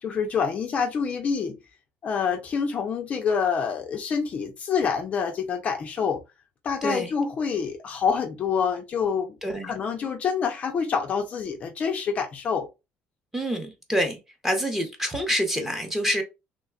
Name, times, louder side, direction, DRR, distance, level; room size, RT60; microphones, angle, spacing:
voice 1, 0.0-1.6 2.0-6.2 6.6-9.4 9.6-12.7, left 6 dB, 35° left, 0.4 m, -27 dB
voice 2, 6.8-7.1 9.4-9.7 13.3-14.2 14.4-16.2, equal, 5° right, 0.7 m, -26 dB
3.1 x 2.2 x 3.5 m
cardioid pair, 160°, 4 cm